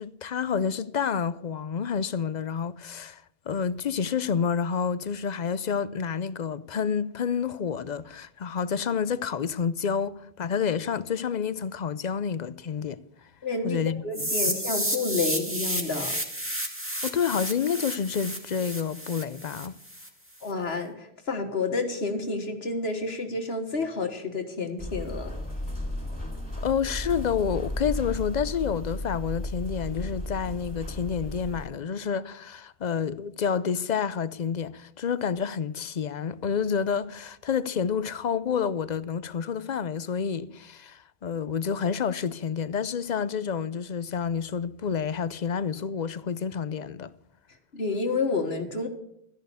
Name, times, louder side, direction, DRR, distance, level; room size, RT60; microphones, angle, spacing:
voice 1, 0.0-13.0 13.6-14.0 17.0-19.7 26.6-47.1, left 7 dB, 50° left, 0.6 m, -29 dB
voice 2, 13.4-16.2 20.4-25.3 47.7-48.9, left 3 dB, 75° left, 1.7 m, -30 dB
sound 1, 14.1-20.1, equal, 10° right, 2.2 m, -31 dB
sound 2, 24.8-31.7, left 1 dB, 25° left, 4.3 m, -34 dB
13.5 x 10.5 x 6.9 m
omnidirectional pair, 1.1 m